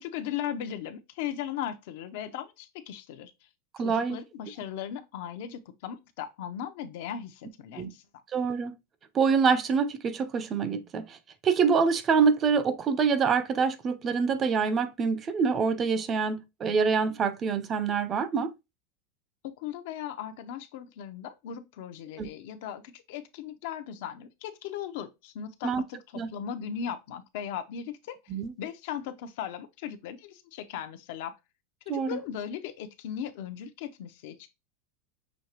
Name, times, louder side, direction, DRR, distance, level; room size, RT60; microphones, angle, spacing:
voice 1, 0.0-3.3 3.8-8.0 19.4-28.2 28.6-31.3 31.9-34.5, left 9 dB, 65° left, 0.7 m, -37 dB
voice 2, 3.8-4.2 7.8-7.9 8.3-8.7 9.1-11.2 11.4-18.5 22.2-22.3 25.6-25.8 26.2-26.3 28.3-28.5 31.9-32.2, right 5 dB, 25° right, 0.5 m, -26 dB
6.2 x 2.9 x 2.9 m
supercardioid pair, 145°, 0 cm